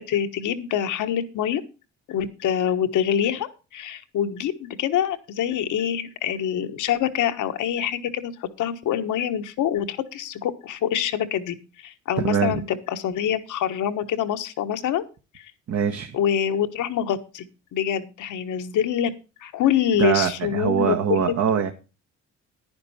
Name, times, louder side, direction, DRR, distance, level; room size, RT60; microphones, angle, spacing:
voice 1, 0.1-1.6 2.1-15.0 15.3-15.5 16.1-17.5 17.7-19.1 19.4-21.6, left 9 dB, 80° left, 9 dB, 1.3 m, -25 dB
voice 2, 12.2-12.6 15.7-16.1 20.0-21.7, right 7 dB, 60° right, 4 dB, 1.3 m, -23 dB
10.5 x 10.0 x 4.2 m, 0.31 s
cardioid pair, 90°, 30 cm